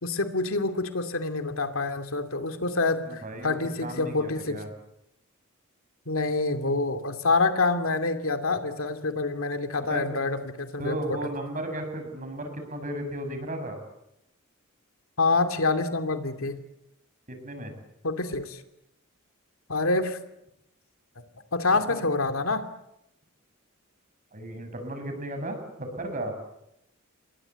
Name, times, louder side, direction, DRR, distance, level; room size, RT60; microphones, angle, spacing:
voice 1, 0.0-4.6 6.1-11.2 15.2-16.6 18.0-18.6 19.7-20.2 21.5-22.6, left 3 dB, 75° left, 7 dB, 2.6 m, -27 dB
voice 2, 3.1-4.7 9.8-10.1 10.8-13.8 17.3-17.8 21.9-22.0 24.3-26.4, right 1 dB, 40° right, 7 dB, 6.9 m, -35 dB
29.5 x 22.5 x 8.2 m, 0.82 s
head